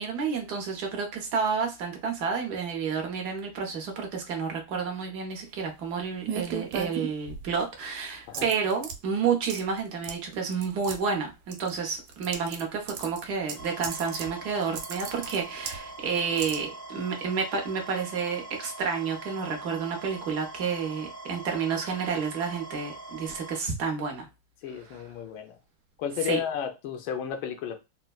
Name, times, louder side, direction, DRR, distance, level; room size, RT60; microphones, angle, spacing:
voice 1, 0.0-24.3 24.7-25.0 26.2-26.4, right 6 dB, 60° right, 1.1 m, -30 dB
sound 1, 6.2-7.6 8.3-9.0 9.5-9.8 10.0-10.1 10.5-10.9 11.5-12.6 12.9-14.3 14.6-15.8 16.4-16.6, right 7 dB, 90° right, 1.6 m, -35 dB
sound 2, 13.5-23.6, right 2 dB, 25° left, 0.4 m, -43 dB
voice 2, 24.6-25.6 26.0-27.8, left 9 dB, 75° left, 1.3 m, -33 dB
4.1 x 2.1 x 2.2 m
omnidirectional pair, 2.4 m